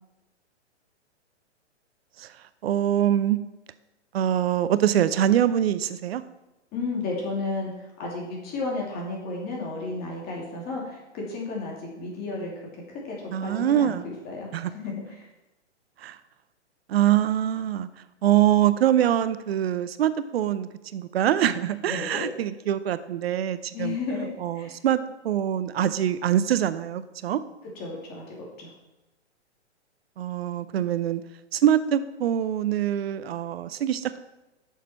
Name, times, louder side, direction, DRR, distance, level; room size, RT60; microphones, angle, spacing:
voice 1, 2.6-3.4 4.1-6.2 13.3-14.0 14.5-14.7 16.0-16.2 16.9-17.9 18.2-24.0 24.4-25.0 25.2-27.4 30.2-31.2 31.5-34.2, right 11 dB, 60° right, 14 dB, 0.7 m, -24 dB
voice 2, 6.7-15.3 21.8-22.3 23.7-24.7 27.7-28.7, left 3 dB, 25° left, -2 dB, 2.6 m, -33 dB
10.0 x 6.6 x 4.3 m, 1.0 s
hypercardioid pair, 125°, 35 cm